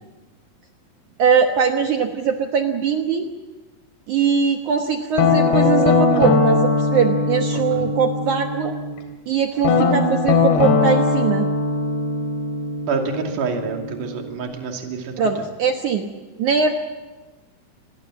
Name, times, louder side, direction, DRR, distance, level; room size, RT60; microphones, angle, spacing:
voice 1, 1.2-3.3 4.1-8.8 9.3-11.5 15.2-16.1 16.4-16.7, right 6 dB, 70° right, 4 dB, 1.9 m, -21 dB
Guitar, 5.2-9.0 9.6-14.4, left 4 dB, 70° left, 4.5 m, -20 dB
voice 2, 7.5-7.9 12.9-15.2, right 5 dB, 50° right, 3 dB, 3.7 m, -27 dB
27.5 x 20.5 x 7.5 m, 1.2 s
omnidirectional pair, 5.3 m